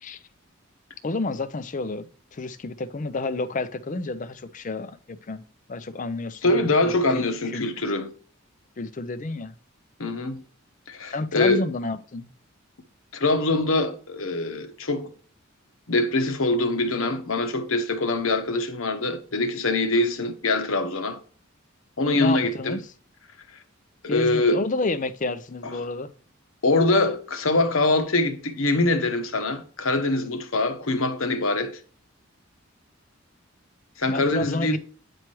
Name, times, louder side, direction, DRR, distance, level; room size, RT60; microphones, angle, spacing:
voice 1, 1.0-5.4 5.7-7.2 7.5-7.6 8.8-9.6 11.1-12.3 22.1-22.8 24.1-26.1 34.1-34.8, left 3 dB, 40° left, 0.5 m, -30 dB
voice 2, 6.4-8.1 10.0-10.4 10.9-11.7 13.1-15.1 15.9-21.2 22.0-22.8 24.0-24.6 26.6-31.8 34.0-34.8, left 2 dB, 80° left, 1.1 m, -23 dB
8.8 x 4.6 x 3.0 m
head